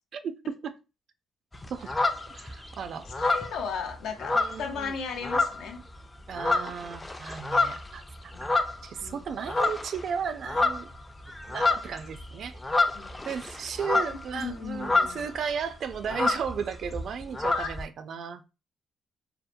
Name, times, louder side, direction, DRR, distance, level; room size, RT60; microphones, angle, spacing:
voice 1, 0.1-0.7 1.7-1.9 2.3-3.1 4.3-5.0 6.3-8.0 8.4-10.9 11.5-12.8 13.2-18.4, right 7 dB, 60° right, 0.3 m, -35 dB
sound 1, 1.5-2.7 3.1-4.9 5.2-5.8 6.2-9.1 9.5-10.0 10.3-15.4 15.6-15.7 15.9-17.8, left 3 dB, 15° left, 0.3 m, -28 dB
voice 2, 3.1-5.8 8.3-8.5 9.0-9.2 12.9-13.2 14.3-15.2 17.5-17.7, left 6 dB, 80° left, 0.5 m, -36 dB
2.7 x 2.1 x 2.5 m
cardioid pair, 90°, 0 cm